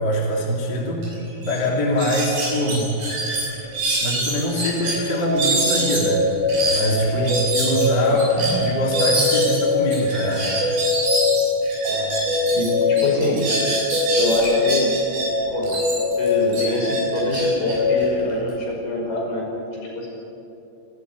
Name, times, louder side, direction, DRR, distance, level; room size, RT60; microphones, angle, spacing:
voice 1, 0.0-2.9 4.0-6.2 6.7-8.3 8.6-10.5, equal, 30° left, -1 dB, 2.9 m, -23 dB
sound 1, 1.0-1.1 1.4-1.6 2.0-4.9 5.4-12.7 13.0-15.3 15.6-18.5, right 2 dB, 65° right, 8.4 m, -26 dB
sound 2, 4.8-18.0, left 3 dB, 40° right, 5.0 m, -23 dB
voice 2, 8.1-8.6 11.9-12.1 12.5-13.4 14.1-14.9 15.5-15.8 16.1-19.5 19.7-20.1, left 1 dB, 60° left, -2 dB, 7.3 m, -26 dB
28.0 x 13.0 x 9.7 m, 2.8 s
omnidirectional pair, 5.0 m